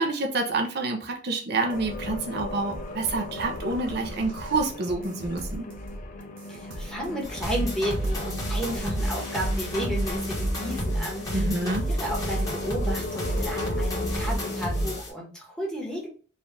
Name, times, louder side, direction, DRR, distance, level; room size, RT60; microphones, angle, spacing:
voice 1, 0.0-5.7 11.3-11.8, right 3 dB, 60° right, 3 dB, 0.7 m, -28 dB
sound 1, 1.6-15.0, left 2 dB, 40° left, 0.5 m, -38 dB
sound 2, 1.7-14.3, equal, 80° right, 0.9 m, -41 dB
voice 2, 6.5-16.1, equal, 5° left, -2 dB, 1.2 m, -33 dB
sound 3, 7.2-15.1, equal, 20° left, 1.3 m, -29 dB
4.1 x 2.5 x 3.3 m, 0.40 s
head